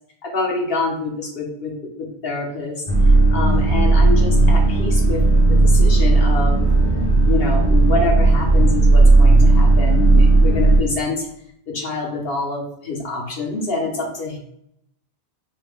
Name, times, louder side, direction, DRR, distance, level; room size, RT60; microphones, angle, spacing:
voice 1, 0.2-2.8 3.3-5.2 5.5-6.6 7.3-11.3 11.7-14.4, left 3 dB, 60° left, 0 dB, 1.1 m, -26 dB
sound 1, 2.9-10.8, right 2 dB, 35° left, 0.8 m, -14 dB
5.6 x 2.2 x 3.4 m, 0.72 s
omnidirectional pair, 1.1 m